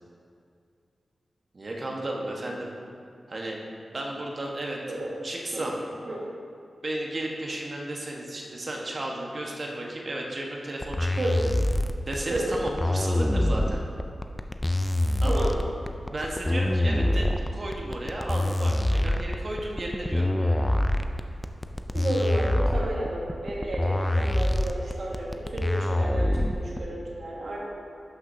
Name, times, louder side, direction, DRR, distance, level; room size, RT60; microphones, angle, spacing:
voice 1, 1.5-2.7 3.3-3.6 3.9-4.8 5.2-5.7 6.8-11.1 12.1-13.8 15.2-15.5 16.1-20.7, right 1 dB, 55° right, -1 dB, 1.3 m, -33 dB
sound 1, 10.8-26.8, left 1 dB, 15° left, 0.5 m, -25 dB
voice 2, 15.2-15.5 21.9-27.6, right 1 dB, 70° right, -4 dB, 1.7 m, -32 dB
11.5 x 5.9 x 2.8 m, 2.3 s
cardioid pair, 45°, 0 cm